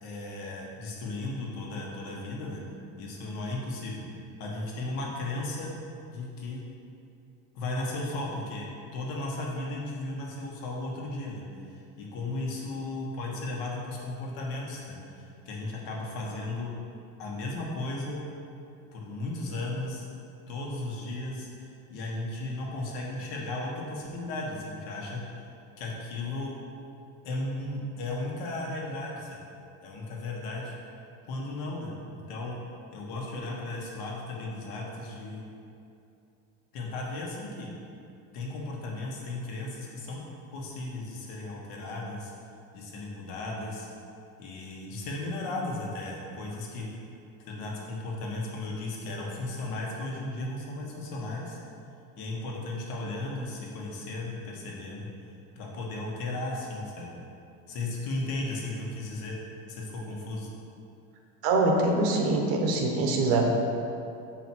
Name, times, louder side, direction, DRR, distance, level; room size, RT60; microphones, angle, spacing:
voice 1, 0.0-2.6 3.0-4.0 4.4-5.7 6.1-6.6 7.5-8.7 8.9-16.7 17.2-18.2 18.9-20.1 20.5-25.2 25.8-26.5 27.2-29.4 29.8-30.7 31.2-32.0 32.3-32.6 32.9-35.4 36.7-37.7 38.3-40.2 40.5-42.3 42.7-43.9 44.4-46.9 47.5-51.6 52.2-55.1 55.5-57.1 57.7-59.3 59.7-60.5, left 2 dB, 65° left, -2 dB, 1.6 m, -35 dB
voice 2, 61.4-63.5, right 2 dB, 70° right, 1 dB, 1.2 m, -24 dB
7.6 x 4.9 x 4.5 m, 2.6 s
cardioid pair, 175°, 38 cm